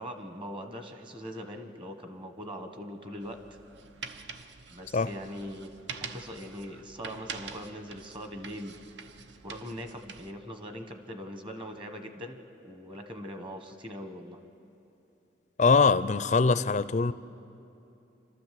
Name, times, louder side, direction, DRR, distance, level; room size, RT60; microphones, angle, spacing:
voice 1, 0.0-3.6 4.7-5.7 6.1-8.7 9.4-14.4, equal, 25° right, 6 dB, 1.3 m, -41 dB
sound 1, 3.2-10.3, right 5 dB, 65° right, 0.8 m, -45 dB
voice 2, 15.6-17.1, left 4 dB, 40° left, 15 dB, 0.4 m, -22 dB
27.0 x 13.0 x 7.7 m, 2.8 s
head